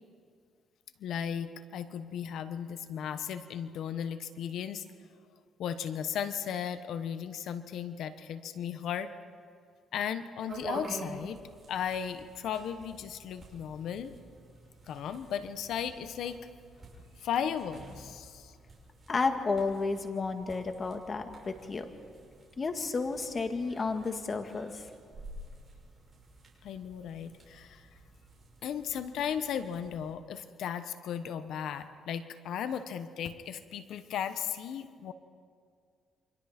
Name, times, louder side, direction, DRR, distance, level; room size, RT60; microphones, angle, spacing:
voice 1, 1.0-4.8 5.6-9.1 9.9-11.4 11.7-14.1 14.9-16.4 17.2-18.5 26.6-27.9 28.6-35.1, left 8 dB, 75° left, 11 dB, 1.1 m, -36 dB
sound 1, 10.5-30.1, right 2 dB, 30° right, 6.5 m, -49 dB
voice 2, 19.1-21.9 22.6-24.8, left 4 dB, 35° left, 6 dB, 1.9 m, -32 dB
29.0 x 24.5 x 4.4 m, 2.2 s
cardioid pair, 90°, 0 cm